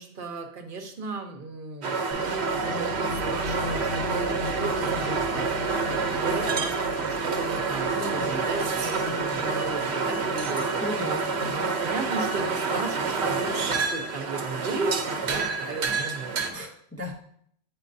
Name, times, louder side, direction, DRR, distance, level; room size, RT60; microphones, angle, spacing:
voice 1, 0.0-8.7 9.0-10.8 11.4-16.4, right 3 dB, 60° right, 4 dB, 0.9 m, -35 dB
sound 1, 1.8-16.5, right 4 dB, 85° right, 1.0 m, -28 dB
sound 2, 2.1-11.9, left 2 dB, 75° left, 1.2 m, -40 dB
voice 2, 7.9-8.5 8.8-9.6 10.8-11.7 16.5-17.1, left 1 dB, 20° left, -1 dB, 0.4 m, -36 dB
8.4 x 4.5 x 2.6 m, 0.66 s
omnidirectional pair, 1.1 m